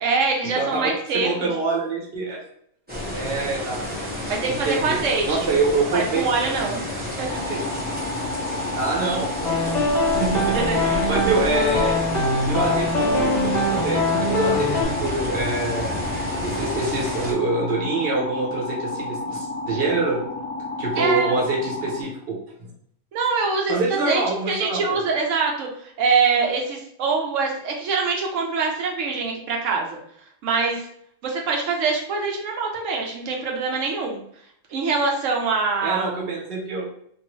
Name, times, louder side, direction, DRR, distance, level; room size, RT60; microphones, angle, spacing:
voice 1, 0.0-1.5 4.3-5.5 5.9-6.8 7.2-7.4 10.5-11.2 21.0-21.3 23.1-30.0 30.4-30.9 31.2-34.2 34.7-36.2, right 4 dB, 75° right, 0 dB, 1.0 m, -24 dB
voice 2, 0.5-2.4 3.0-3.8 4.5-5.0 5.3-6.3 7.5-7.6 8.7-12.0 12.5-16.0 16.4-20.2 20.8-22.4 23.7-25.0 35.8-36.9, right 3 dB, 55° right, -2 dB, 1.0 m, -26 dB
sound 1, 2.9-17.3, left 1 dB, 10° right, 0.7 m, -31 dB
sound 2, 7.3-22.0, left 3 dB, 75° left, 1.0 m, -32 dB
sound 3, 9.4-14.8, left 1 dB, 40° left, 0.7 m, -22 dB
2.7 x 2.6 x 3.0 m, 0.66 s
omnidirectional pair, 1.3 m